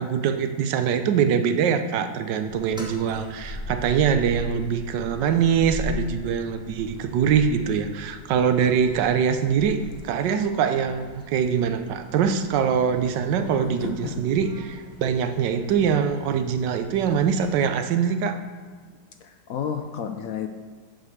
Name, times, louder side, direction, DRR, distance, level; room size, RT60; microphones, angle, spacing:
voice 1, 0.0-9.8 10.0-18.4, right 7 dB, 85° right, 9 dB, 1.3 m, -23 dB
sound 1, 2.5-17.6, left 1 dB, 5° right, 1.3 m, -41 dB
voice 2, 13.4-14.2 19.2-20.6, left 8 dB, 70° left, 6 dB, 0.8 m, -32 dB
7.9 x 5.1 x 6.5 m, 1.5 s
omnidirectional pair, 1.8 m